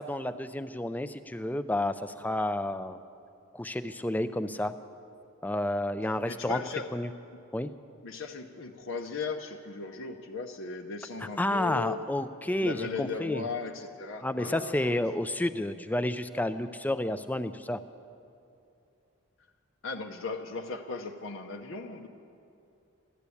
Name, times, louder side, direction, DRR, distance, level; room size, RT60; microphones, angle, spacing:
voice 1, 0.0-3.0 3.5-4.7 5.4-6.6 6.9-7.1 7.5-7.7 11.2-13.5 14.2-17.8, left 1 dB, 10° left, 11 dB, 0.4 m, -30 dB
voice 2, 6.3-6.9 8.0-12.0 12.6-15.0 19.8-22.1, left 4 dB, 60° left, 4 dB, 0.7 m, -37 dB
14.0 x 12.0 x 8.4 m, 2.7 s
head